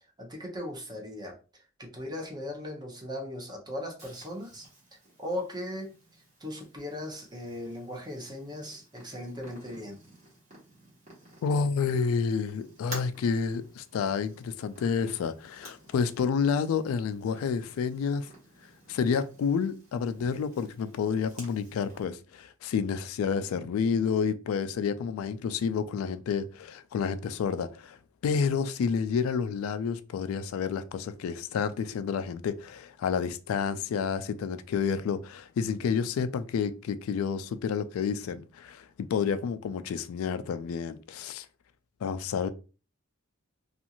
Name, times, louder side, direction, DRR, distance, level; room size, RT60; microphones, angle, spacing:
voice 1, 0.2-4.7 5.2-5.9 6.4-10.0, left 1 dB, 20° right, 0.7 m, -38 dB
Purr, 4.0-22.0, right 1 dB, 35° right, 1.2 m, -52 dB
voice 2, 11.4-18.3 18.9-28.0 28.2-41.5 42.0-42.5, left 6 dB, 90° left, 0.3 m, -29 dB
2.6 x 2.4 x 2.8 m
head